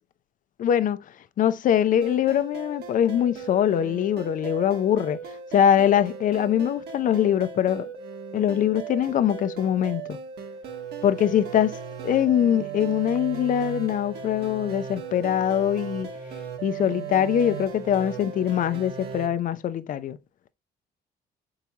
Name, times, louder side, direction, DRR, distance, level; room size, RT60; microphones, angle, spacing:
voice 1, 0.6-1.0 1.4-5.2 5.5-7.9 8.3-10.2 11.0-11.8 12.0-16.1 16.6-20.2, left 10 dB, 50° left, 0.6 m, -23 dB
sound 1, 2.0-19.3, right 7 dB, 70° right, 1.4 m, -37 dB
6.9 x 4.8 x 2.8 m
cardioid pair, 110°, 17 cm